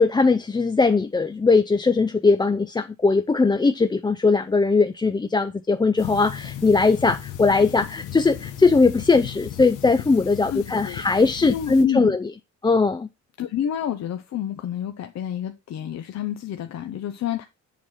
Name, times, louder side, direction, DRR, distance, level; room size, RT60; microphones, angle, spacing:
voice 1, 0.0-12.3 12.6-13.1, left 4 dB, 15° left, 0.4 m, -20 dB
sound 1, 6.0-11.8, left 11 dB, 90° left, 1.2 m, -36 dB
voice 2, 10.5-11.0 11.4-12.2 13.4-17.4, left 10 dB, 60° left, 0.9 m, -29 dB
7.5 x 5.8 x 4.3 m
cardioid pair, 90°, 30 cm